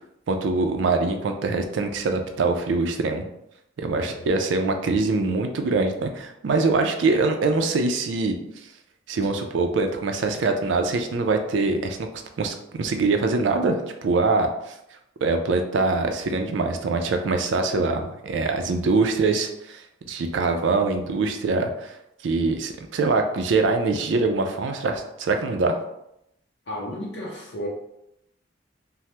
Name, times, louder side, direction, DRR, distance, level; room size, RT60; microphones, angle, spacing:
voice 1, 0.3-3.3 3.8-8.4 9.1-12.1 12.4-14.7 15.2-22.0 22.2-25.8, right 3 dB, 75° right, 5 dB, 0.4 m, -23 dB
voice 2, 4.0-4.4 26.7-27.7, left 1 dB, 60° left, -4 dB, 0.5 m, -33 dB
3.3 x 2.0 x 2.8 m, 0.82 s
head